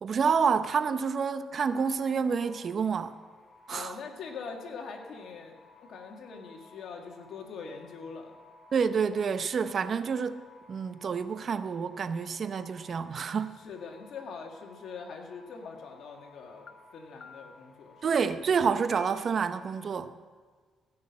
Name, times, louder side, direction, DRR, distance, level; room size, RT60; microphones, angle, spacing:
voice 1, 0.0-3.2 3.7-4.0 8.7-10.4 10.7-13.6 18.0-20.1, right 6 dB, 50° right, 0.7 m, -28 dB
sound 1, 1.5-19.9, left 3 dB, 35° left, 4.3 m, -57 dB
voice 2, 3.7-8.3 13.6-17.9, left 5 dB, 65° left, 2.1 m, -43 dB
sound 2, 15.1-15.2 15.6-16.0 16.7-16.8 17.2-17.7 18.3-18.4 18.9-19.5, left 6 dB, 50° left, 0.6 m, -49 dB
16.0 x 6.4 x 8.5 m
cardioid pair, 90°, 0 cm